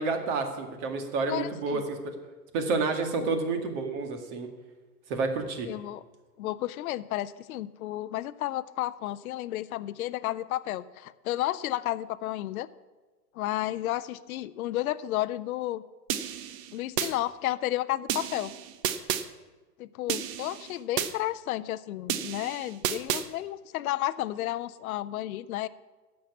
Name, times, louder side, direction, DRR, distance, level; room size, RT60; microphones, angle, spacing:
voice 1, 0.0-2.0 2.5-4.5 5.1-5.7, right 4 dB, 45° right, 6 dB, 2.1 m, -29 dB
voice 2, 1.3-1.8 3.2-3.3 5.7-6.0 6.4-12.7 13.3-15.8 16.7-18.5 19.8-25.7, left 15 dB, 60° left, 15 dB, 0.6 m, -32 dB
sound 1, 16.1-17.1 18.1-19.2 20.1-21.1 22.1-23.2, right 10 dB, 25° right, 0.4 m, -31 dB
11.5 x 7.5 x 8.3 m, 1.3 s
hypercardioid pair, 110°, 48 cm